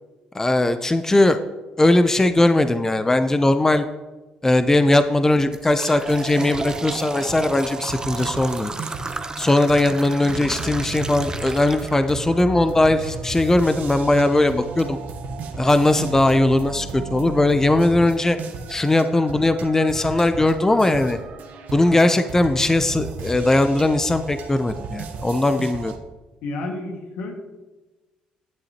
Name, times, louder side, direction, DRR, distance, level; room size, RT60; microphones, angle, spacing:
voice 1, 0.3-1.4 1.8-3.9 4.4-8.7 9.4-15.0 15.6-18.4 18.7-21.2 21.7-25.9, left 2 dB, 15° left, 10 dB, 0.5 m, -19 dB
sound 1, 4.6-4.8 5.2-12.4 12.8-12.9 13.8-13.9 14.4-14.5 14.9-15.2, right 3 dB, 25° right, 0.8 m, -33 dB
sound 2, 6.0-26.0, right 4 dB, 75° right, 1.0 m, -35 dB
voice 2, 26.4-27.3, left 2 dB, 80° left, 2 dB, 1.8 m, -30 dB
11.0 x 8.6 x 2.9 m, 1.2 s
supercardioid pair, 65°, 3 cm